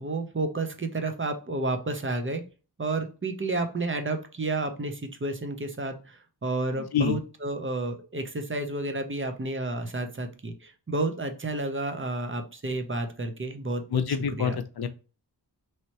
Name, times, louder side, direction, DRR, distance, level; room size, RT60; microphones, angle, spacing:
voice 1, 0.0-2.4 2.8-14.0 14.4-14.6, right 2 dB, 30° right, 6 dB, 0.7 m, -31 dB
voice 2, 13.9-14.9, left 7 dB, 60° left, 10 dB, 0.6 m, -26 dB
3.2 x 2.8 x 2.8 m, 0.34 s
wide cardioid pair, 50°, 43 cm